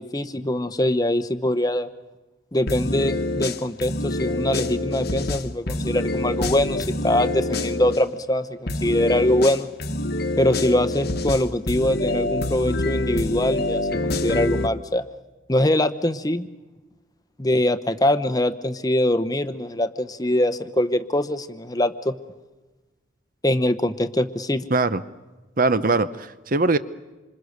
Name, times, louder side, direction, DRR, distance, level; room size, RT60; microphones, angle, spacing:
voice 1, 0.0-1.9 2.5-9.7 10.4-15.0 15.5-16.5 17.4-22.1 23.4-24.7, left 1 dB, 20° left, 11 dB, 0.9 m, -23 dB
sound 1, 2.7-8.0 8.7-14.7, left 2 dB, 50° left, 1.3 m, -26 dB
voice 2, 24.7-25.0 25.6-26.8, right 3 dB, 45° right, 13 dB, 0.9 m, -21 dB
27.5 x 26.0 x 6.7 m, 1.1 s
head